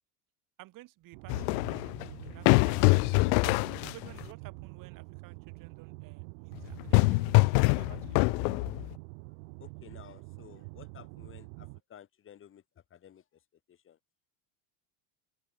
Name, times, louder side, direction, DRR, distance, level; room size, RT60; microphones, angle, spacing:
voice 1, 0.6-3.3 3.8-8.3, right 18 dB, 45° right, 2.9 m, -54 dB
sound 1, 1.1-11.8, right 31 dB, 75° right, 1.0 m, -46 dB
sound 2, 1.3-4.2 6.6-8.9, left 39 dB, 65° left, 0.6 m, -24 dB
voice 2, 9.3-14.0, left 9 dB, 25° left, 3.8 m, -55 dB
open air
cardioid pair, 170°, 46 cm